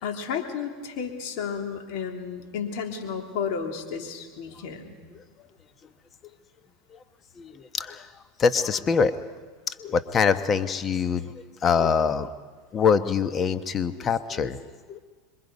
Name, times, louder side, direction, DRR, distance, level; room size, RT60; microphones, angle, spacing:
voice 1, 0.0-4.9, left 6 dB, 65° left, 3 dB, 3.4 m, -32 dB
voice 2, 7.4-8.1 8.4-9.1 9.7-11.3 11.6-12.3 12.7-14.6 14.9-15.0, left 6 dB, 30° left, 11 dB, 1.1 m, -24 dB
26.5 x 23.0 x 5.5 m, 1.4 s
hypercardioid pair, 95°, 0 cm